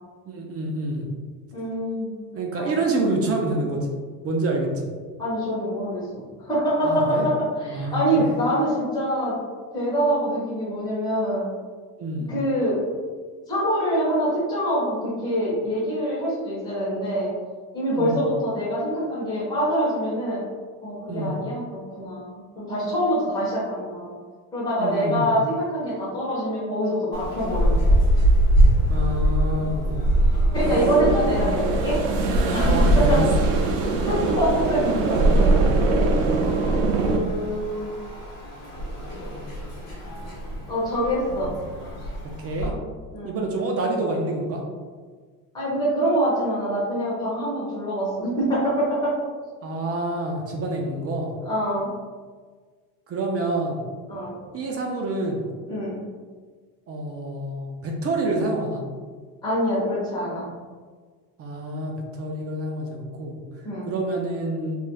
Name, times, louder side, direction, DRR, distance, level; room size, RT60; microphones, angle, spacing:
voice 1, 0.3-1.1 2.3-3.9 4.2-4.7 6.8-7.3 7.7-8.3 12.0-12.3 17.9-18.2 21.1-21.4 24.8-25.3 28.9-30.0 32.6-33.2 42.4-42.7 43.2-44.6 49.6-51.3 53.1-53.9 54.5-55.5 56.9-58.8 61.4-63.4 63.8-64.8, right 2 dB, 35° right, 1 dB, 0.5 m, -27 dB
voice 2, 1.5-2.1 2.6-2.7 5.2-7.3 7.6-9.4 9.7-11.5 12.3-12.8 13.5-17.3 17.7-20.4 20.8-24.1 24.5-28.0 30.5-32.0 32.5-33.2 34.1-35.6 37.0-37.9 40.7-41.5 43.1-43.4 45.5-49.1 51.4-51.9 54.1-54.3 55.7-56.0 59.4-60.5 63.6-63.9, equal, 10° left, -8 dB, 1.2 m, -25 dB
sound 1, 27.1-42.7, equal, 35° left, 1.2 m, -24 dB
sound 2, 30.5-37.2, right 3 dB, 85° right, 0.6 m, -22 dB
3.1 x 3.0 x 2.2 m, 1.6 s
cardioid pair, 115°, 42 cm